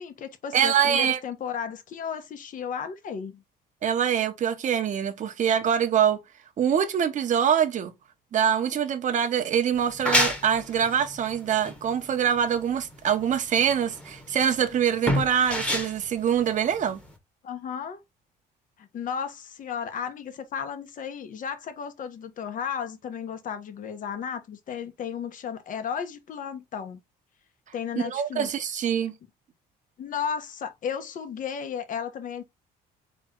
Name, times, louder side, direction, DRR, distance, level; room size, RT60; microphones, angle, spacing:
voice 1, 0.0-3.4 17.4-18.0 18.8-27.0 27.7-28.5 30.0-32.4, left 7 dB, 50° left, 1.1 m, -34 dB
voice 2, 0.5-1.2 3.8-6.2 6.6-7.9 8.3-17.0 28.0-29.1, right 8 dB, 50° right, 1.0 m, -24 dB
sound 1, 9.7-17.2, left 1 dB, 5° left, 1.3 m, -29 dB
4.3 x 3.2 x 3.7 m
cardioid pair, 110°, 17 cm